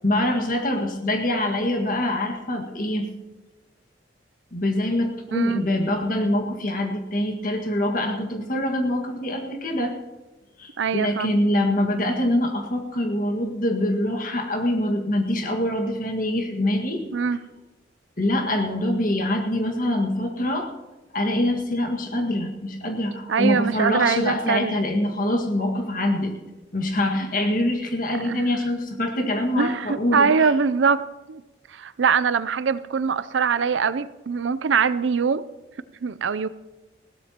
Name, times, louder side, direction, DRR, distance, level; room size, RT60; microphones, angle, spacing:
voice 1, 0.0-3.1 4.5-10.0 10.6-17.0 18.2-20.7 21.1-26.4 26.7-30.5, left 1 dB, 45° left, 3 dB, 1.8 m, -24 dB
voice 2, 5.3-5.6 10.8-11.3 17.1-17.4 23.3-24.8 28.2-28.5 29.5-31.0 31.3-31.4 31.7-35.4 36.0-36.5, right 6 dB, 80° right, 15 dB, 0.5 m, -23 dB
20.5 x 16.0 x 3.0 m, 1.1 s
head